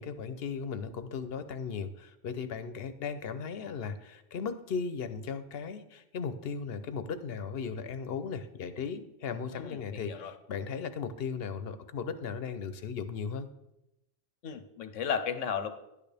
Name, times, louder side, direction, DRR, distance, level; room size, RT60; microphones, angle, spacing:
voice 1, 0.0-13.5, left 6 dB, 60° left, 11 dB, 0.9 m, -37 dB
voice 2, 9.5-10.3 14.4-15.7, left 7 dB, 90° left, 9 dB, 1.2 m, -34 dB
11.0 x 8.9 x 3.4 m, 0.88 s
omnidirectional pair, 1.2 m